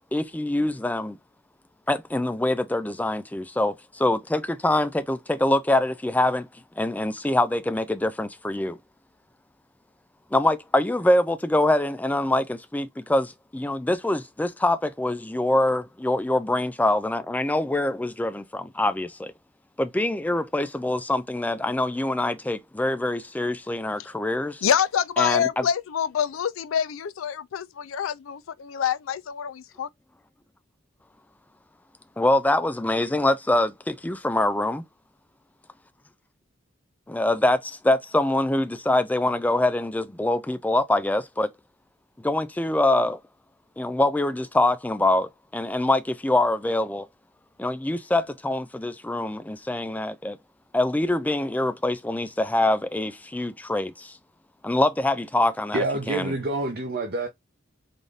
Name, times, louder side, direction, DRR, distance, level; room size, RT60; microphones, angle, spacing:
voice 1, 0.1-1.2 1.9-6.5 6.8-8.8 10.3-19.3 19.8-24.6 25.2-25.6 32.2-34.8 37.1-41.5 42.2-43.2 43.8-47.1 47.6-50.4 50.7-54.2 54.6-56.3, left 1 dB, 10° left, 0.3 m, -24 dB
voice 2, 24.6-29.9, left 8 dB, 90° left, 0.4 m, -26 dB
voice 3, 55.7-57.3, right 2 dB, 50° right, 0.8 m, -27 dB
3.9 x 2.5 x 3.3 m
head